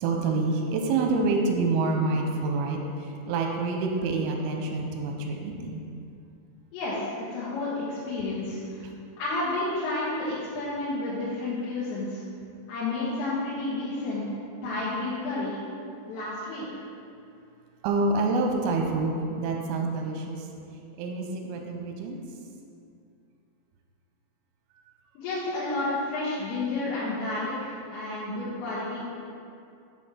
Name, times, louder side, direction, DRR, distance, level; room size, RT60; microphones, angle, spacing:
voice 1, 0.0-5.8 17.8-20.5 21.0-22.2, right 3 dB, 85° right, 2 dB, 3.1 m, -27 dB
voice 2, 6.7-8.8 9.2-12.2 12.7-14.4 14.6-15.6 16.1-16.7 25.2-29.1, left 2 dB, 85° left, -9 dB, 3.9 m, -31 dB
8.1 x 6.4 x 4.4 m, 2.5 s
omnidirectional pair, 5.7 m